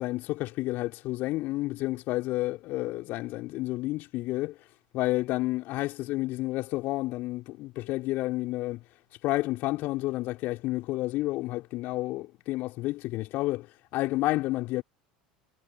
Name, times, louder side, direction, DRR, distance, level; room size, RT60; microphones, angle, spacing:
voice 1, 0.0-4.6 4.9-8.8 9.2-13.7 13.9-14.8, left 18 dB, 50° left, 4.0 m, -30 dB
figure-of-eight pair, 70°, 4 cm